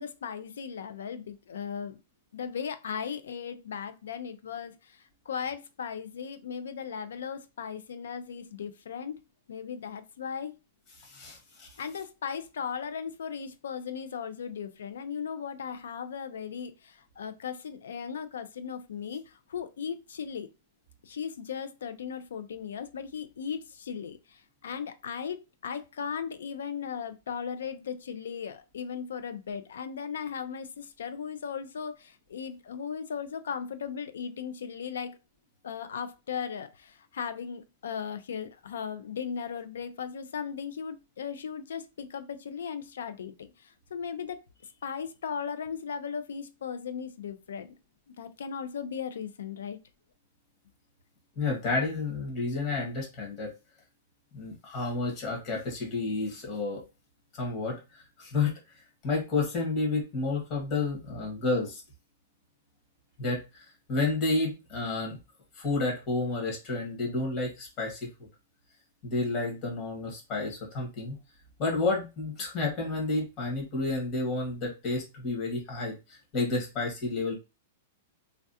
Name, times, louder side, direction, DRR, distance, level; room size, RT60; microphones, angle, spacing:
voice 1, 0.0-2.0 2.3-9.2 9.5-10.6 11.8-20.5 21.0-35.2 35.6-44.4 44.8-47.7 48.2-49.8, left 7 dB, 85° left, 11 dB, 0.5 m, -37 dB
voice 2, 11.0-11.7 51.3-53.5 54.3-56.8 57.3-58.5 59.0-61.8 63.2-65.2 65.5-68.1 69.0-71.2 71.6-77.4, left 3 dB, 35° left, -1 dB, 1.6 m, -30 dB
3.2 x 2.4 x 2.7 m, 0.27 s
hypercardioid pair, 145°, 0 cm